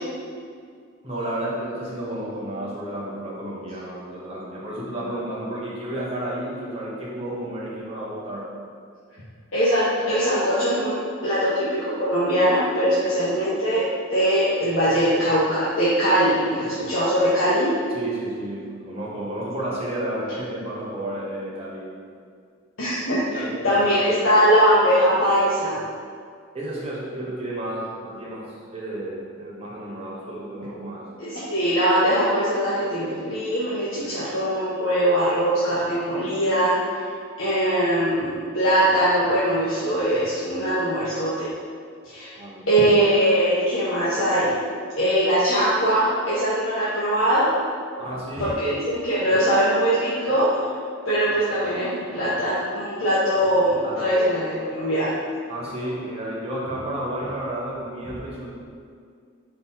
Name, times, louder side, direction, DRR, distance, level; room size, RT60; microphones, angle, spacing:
voice 1, 1.0-8.5 17.9-21.9 23.3-24.4 26.5-31.2 42.4-42.7 48.0-48.5 52.2-52.3 53.8-54.1 55.5-58.5, right 1 dB, 30° right, -6 dB, 1.2 m, -32 dB
voice 2, 9.5-13.8 14.1-17.7 22.8-25.8 31.2-36.7 37.4-41.5 42.0-42.3 42.7-44.5 45.0-47.5 48.4-50.7 51.1-55.1, equal, 70° left, -10 dB, 1.2 m, -21 dB
4.5 x 4.0 x 5.5 m, 2.1 s
head